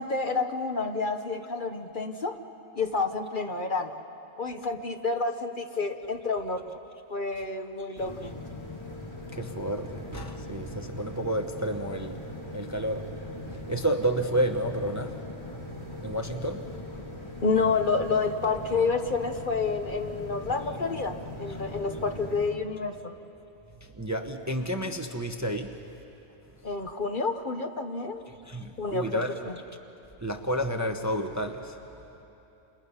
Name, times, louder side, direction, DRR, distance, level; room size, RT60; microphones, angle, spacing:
voice 1, 0.0-2.4 2.8-4.0 4.4-6.8 7.1-8.3 17.4-23.1 26.6-28.2 28.8-29.6, left 4 dB, 45° left, 6 dB, 1.0 m, -29 dB
sound 1, 8.0-22.5, left 1 dB, 20° left, 2.7 m, -40 dB
voice 2, 9.3-12.2 12.5-13.1 13.5-15.2 16.0-16.7 23.8-25.8 28.4-29.3 30.2-31.8, right 1 dB, 15° right, 5 dB, 0.8 m, -30 dB
29.5 x 28.0 x 5.6 m, 3.0 s
omnidirectional pair, 1.3 m